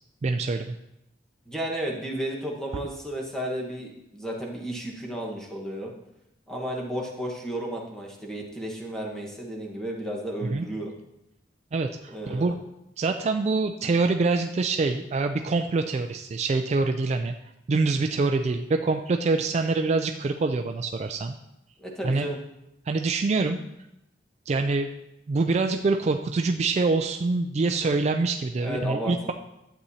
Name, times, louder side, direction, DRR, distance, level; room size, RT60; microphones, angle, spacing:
voice 1, 0.2-0.7 10.4-10.7 11.7-12.6 13.0-17.3 17.7-21.3 22.0-22.3 22.9-23.6 24.5-24.9 25.3-29.3, right 3 dB, 40° right, 6 dB, 0.3 m, -25 dB
voice 2, 1.5-5.9 6.5-10.9 12.1-12.5 21.8-22.4 28.6-29.3, right 1 dB, 5° left, -2 dB, 1.3 m, -33 dB
11.5 x 8.0 x 2.8 m, 0.87 s
head